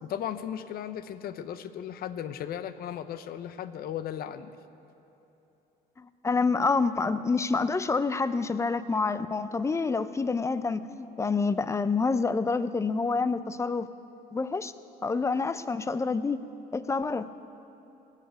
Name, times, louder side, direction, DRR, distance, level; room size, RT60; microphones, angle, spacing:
voice 1, 0.0-4.6, left 10 dB, 65° left, 12 dB, 0.7 m, -36 dB
voice 2, 6.0-13.9 14.3-14.7 15.0-16.4 16.7-17.2, left 4 dB, 15° left, 14 dB, 0.5 m, -27 dB
19.5 x 6.7 x 9.3 m, 2.9 s
cardioid pair, 110°, 17 cm